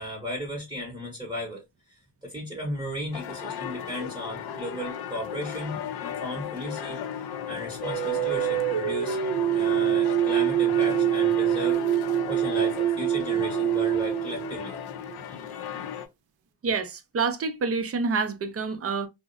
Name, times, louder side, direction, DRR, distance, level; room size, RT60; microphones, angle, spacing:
voice 1, 0.0-9.2 9.5-11.8 12.3-14.8, equal, 10° right, 0.9 m, -36 dB
sound 1, 3.1-16.1, left 9 dB, 50° left, 0.5 m, -35 dB
sound 2, 7.8-15.2, right 12 dB, 70° right, 0.6 m, -25 dB
voice 2, 16.6-19.1, right 4 dB, 30° right, 0.5 m, -27 dB
2.5 x 2.1 x 2.5 m
cardioid pair, 75°, 48 cm